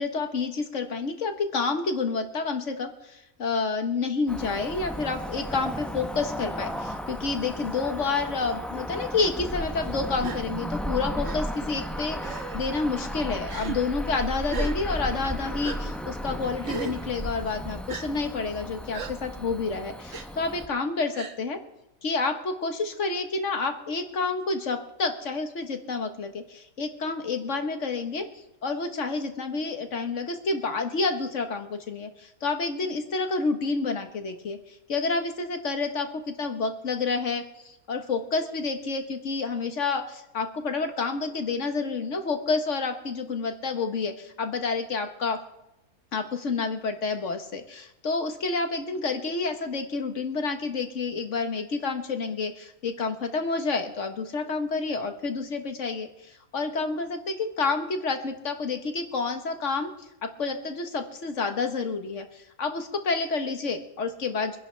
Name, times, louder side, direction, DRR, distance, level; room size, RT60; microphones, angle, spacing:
voice 1, 0.0-21.6 22.0-28.2 28.6-45.4 46.1-59.9 60.2-64.6, left 4 dB, 55° left, 6 dB, 1.6 m, -29 dB
Cricket / Motor vehicle (road), 4.3-20.7, equal, ahead, 0.5 m, -34 dB
Gasp, 10.2-10.4 11.2-11.4 12.2-12.6 13.4-13.8 14.5-14.8 15.6-15.8 16.6-17.0 17.9-18.0 18.9-19.1 20.1-20.3 21.1-21.4, right 5 dB, 60° right, 1.3 m, -35 dB
25.0 x 10.5 x 3.4 m, 0.89 s
omnidirectional pair, 1.5 m